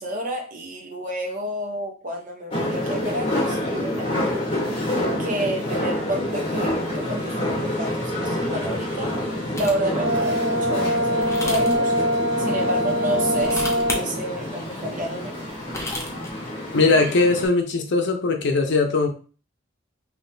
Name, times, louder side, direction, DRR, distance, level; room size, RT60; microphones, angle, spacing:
voice 1, 0.0-4.5 5.2-9.1 9.5-11.9 12.4-15.4, right 1 dB, 40° right, 1 dB, 0.8 m, -30 dB
Rollings stairs on Paris Metro, 2.5-17.5, left 1 dB, 30° left, 1.5 m, -28 dB
sound 1, 9.6-9.9 11.2-11.8 13.3-14.0 15.5-16.3, left 2 dB, 15° left, 0.6 m, -31 dB
Brass instrument, 9.9-14.0, equal, 70° right, 1.4 m, -23 dB
voice 2, 16.7-19.1, left 3 dB, 60° left, 4 dB, 0.6 m, -20 dB
3.6 x 2.7 x 2.7 m, 0.36 s
head